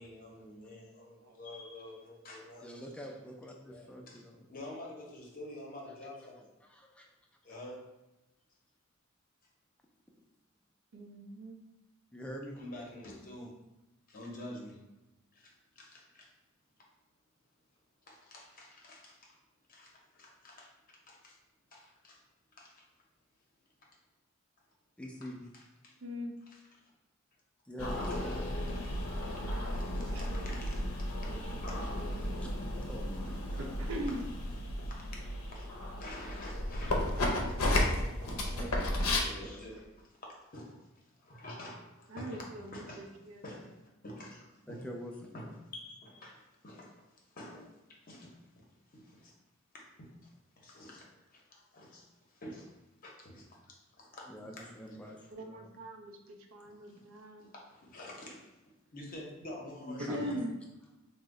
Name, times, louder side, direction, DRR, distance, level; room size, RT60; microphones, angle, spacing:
voice 1, 0.0-2.7 4.1-6.5 7.4-7.8 12.5-13.5 14.1-14.8 15.3-16.3 18.1-19.4 19.7-21.4 21.7-22.2 22.6-22.9 25.2-25.3 25.5-25.9 26.5-26.9 28.0-28.4 28.7-28.8 29.7-31.8 34.8-37.5 37.9-42.5 42.7-43.1 43.4-44.8 45.3-48.4 48.9-49.3 49.7-50.3 50.6-52.7 53.0-54.7 56.6-57.0 57.4-58.5 58.9-60.4, left 1 dB, 45° left, -2 dB, 0.7 m, -49 dB
voice 2, 2.6-4.5 5.9-6.0 6.6-7.1 12.1-12.6 25.0-25.4 27.7-28.5 32.4-33.9 38.4-39.6 44.7-45.4 54.3-55.7 59.8-60.4, equal, 5° left, 0 dB, 0.3 m, -45 dB
voice 3, 10.9-11.6 26.0-26.4 30.1-30.6 31.3-32.4 33.6-34.2 37.2-38.3 42.1-43.4 55.3-57.5 60.0-60.6, equal, 70° right, 4 dB, 0.4 m, -42 dB
sound 1, 27.8-39.2, left 1 dB, 85° left, 0.5 m, -34 dB
3.0 x 2.0 x 3.6 m, 1.0 s
head